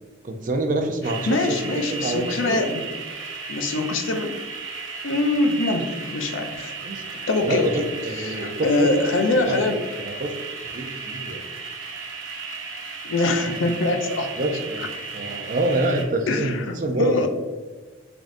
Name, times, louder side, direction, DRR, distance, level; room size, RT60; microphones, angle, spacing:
voice 1, 0.2-1.6 1.9-2.6 6.8-7.0 7.4-8.9 9.5-9.6 10.0-10.4 10.7-11.4 14.4-14.9 15.1-17.2, right 2 dB, 40° right, 4 dB, 0.4 m, -26 dB
voice 2, 1.0-2.8 3.5-4.3 5.0-6.7 7.3-9.8 13.0-14.3 16.3-17.3, left 2 dB, 65° left, 5 dB, 0.5 m, -24 dB
sound 1, 1.0-16.0, right 5 dB, 65° right, 0.8 m, -35 dB
3.7 x 3.5 x 2.6 m, 1.3 s
head